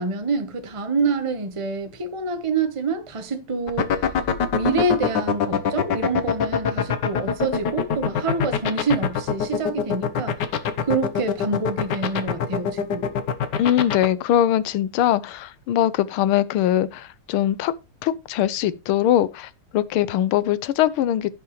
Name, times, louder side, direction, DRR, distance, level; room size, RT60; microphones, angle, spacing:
voice 1, 0.0-4.0 4.5-10.4 10.8-13.1, right 3 dB, 20° right, 0.8 m, -26 dB
sound 1, 3.7-14.1, left 7 dB, 60° left, 1.5 m, -22 dB
voice 2, 13.6-17.7 18.0-21.3, left 11 dB, 80° left, 1.6 m, -21 dB
15.5 x 5.8 x 3.1 m
omnidirectional pair, 2.3 m